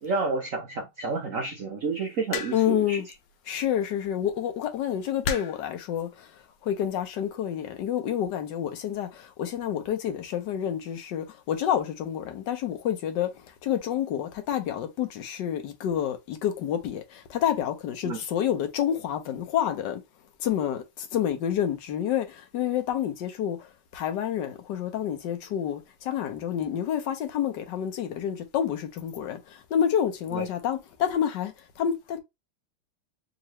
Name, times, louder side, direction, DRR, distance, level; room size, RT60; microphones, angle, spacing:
voice 1, 0.0-3.0 18.0-18.2 30.3-30.4, right 3 dB, 60° right, 0.8 m, -30 dB
sound 1, 2.3-2.8 4.1-4.3 5.2-5.7 6.7-7.0, left 5 dB, 90° left, 1.5 m, -33 dB
voice 2, 2.5-3.1 3.5-6.3 6.6-13.3 13.6-20.0 20.4-23.7 23.9-32.2, left 10 dB, 65° left, 1.3 m, -28 dB
3.7 x 3.0 x 3.0 m
omnidirectional pair, 2.3 m